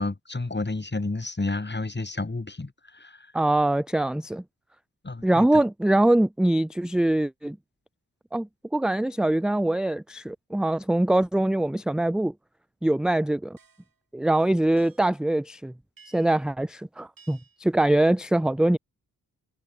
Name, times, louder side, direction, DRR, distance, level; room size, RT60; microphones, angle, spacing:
voice 1, 0.0-3.3 5.0-5.6, left 3 dB, 25° left, 3.9 m, -31 dB
voice 2, 3.3-4.4 5.2-7.6 8.3-12.3 12.8-13.6 14.1-15.7 16.1-18.8, right 1 dB, ahead, 0.3 m, -23 dB
sound 1, 13.6-14.0 14.8-15.2 16.0-16.5 17.2-17.6, right 6 dB, 60° right, 5.7 m, -56 dB
supercardioid pair, 45°, 39 cm